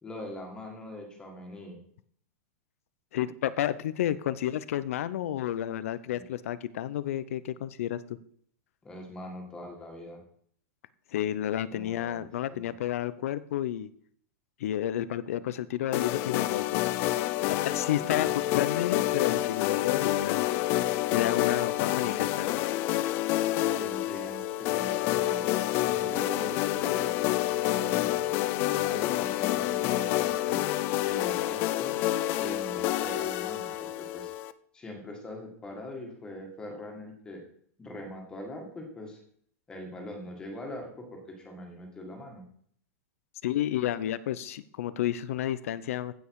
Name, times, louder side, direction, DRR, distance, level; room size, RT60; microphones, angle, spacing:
voice 1, 0.0-1.8 6.0-6.2 8.8-10.2 11.7-12.7 17.5-18.3 23.6-25.4 25.8-27.1 27.7-28.4 28.7-30.7 31.0-32.0 32.3-34.3 34.7-37.4 37.8-39.2 39.7-42.5, left 1 dB, 10° left, 2 dB, 1.9 m, -42 dB
voice 2, 3.1-8.0 11.1-13.9 14.6-16.9 17.5-20.5 21.1-22.6 43.4-46.1, left 12 dB, 65° left, 16 dB, 0.7 m, -31 dB
sound 1, 15.9-34.5, left 15 dB, 25° left, 0.4 m, -28 dB
15.5 x 5.3 x 4.8 m, 0.62 s
supercardioid pair, 175°, 8 cm